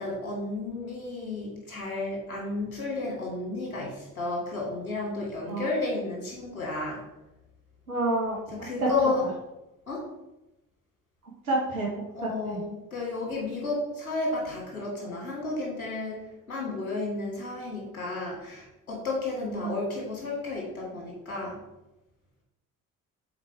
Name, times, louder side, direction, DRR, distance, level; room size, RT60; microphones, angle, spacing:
voice 1, 0.0-7.0 8.5-9.2 9.9-10.0 12.1-21.6, left 2 dB, 85° left, -3 dB, 1.9 m, -32 dB
voice 2, 7.9-8.4 8.8-8.9 11.4-11.9 12.2-12.6 19.4-19.7, right 2 dB, 85° right, -3 dB, 1.4 m, -28 dB
7.0 x 4.4 x 4.5 m, 0.95 s
figure-of-eight pair, 50°, 42 cm